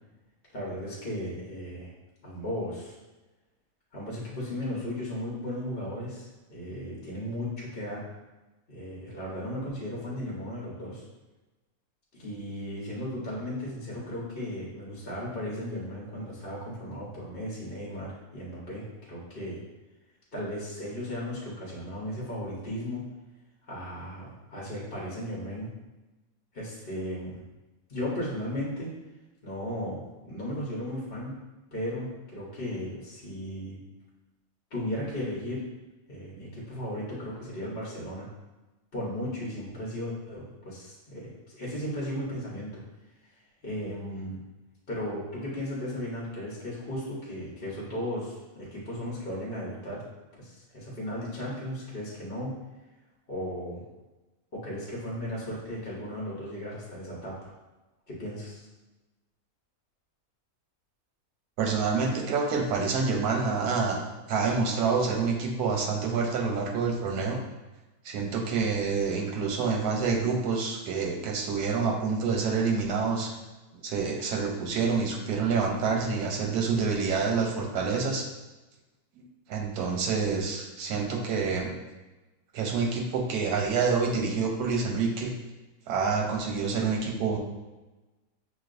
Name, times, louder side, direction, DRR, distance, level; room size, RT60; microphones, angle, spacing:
voice 1, 0.5-1.9 2.2-2.9 3.9-8.0 8.7-11.0 12.1-19.6 20.3-23.0 23.7-25.7 26.5-27.4 27.9-28.9 29.4-31.4 31.7-33.8 34.7-35.6 36.1-38.3 38.9-42.8 43.6-44.4 44.9-50.1 50.3-52.5 53.3-53.8 54.5-57.5 58.1-58.7, equal, 40° left, -6 dB, 1.0 m, -35 dB
voice 2, 61.6-67.4 68.0-73.3 73.7-78.3 79.2-81.7 82.5-85.3 85.9-87.4, right 5 dB, 90° right, 2 dB, 1.2 m, -27 dB
6.1 x 2.4 x 2.5 m, 1.1 s
omnidirectional pair, 1.6 m